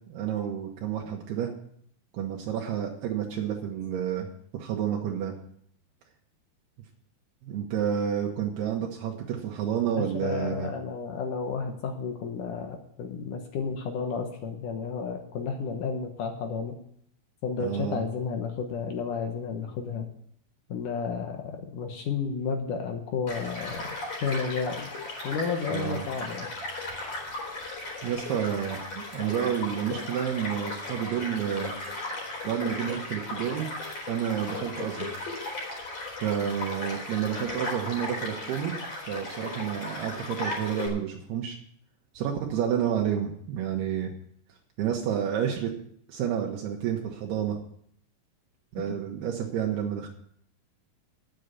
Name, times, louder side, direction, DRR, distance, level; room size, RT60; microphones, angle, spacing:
voice 1, 0.1-1.5 2.1-4.3 4.5-5.3 7.4-10.7 17.6-18.0 25.7-26.1 28.0-31.7 32.4-33.7 34.1-35.3 36.2-38.7 39.1-41.6 42.1-44.1 44.8-45.7 46.1-47.6 48.7-50.1, right 9 dB, 75° right, 1 dB, 3.0 m, -30 dB
voice 2, 10.0-16.8 17.4-20.1 20.7-24.0 24.2-24.9 25.2-26.5, left 5 dB, 65° left, 4 dB, 2.2 m, -32 dB
Child speech kid speaking / Stream / Car passing by, 23.3-40.9, left 2 dB, 40° left, 4.5 m, -36 dB
10.5 x 7.8 x 8.2 m, 0.67 s
omnidirectional pair, 4.8 m